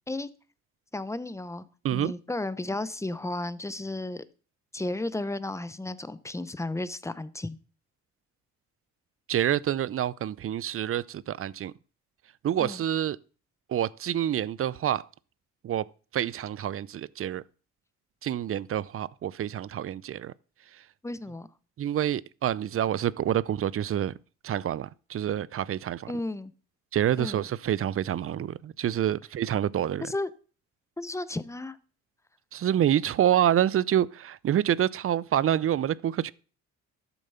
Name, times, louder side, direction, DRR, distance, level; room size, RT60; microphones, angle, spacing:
voice 1, 0.9-1.7 1.9-4.2 4.7-7.6 12.6-12.8 21.0-21.5 26.1-26.5 27.2-27.5 30.0-30.3 31.0-31.8, left 2 dB, 10° left, 0.8 m, -33 dB
voice 2, 9.3-11.7 12.4-13.2 13.7-15.1 15.6-15.9 16.1-17.4 18.2-20.3 21.8-24.1 24.4-26.1 26.9-30.1 32.5-36.3, right 11 dB, 50° right, 0.6 m, -27 dB
12.5 x 7.0 x 5.7 m
cardioid pair, 90°, 30 cm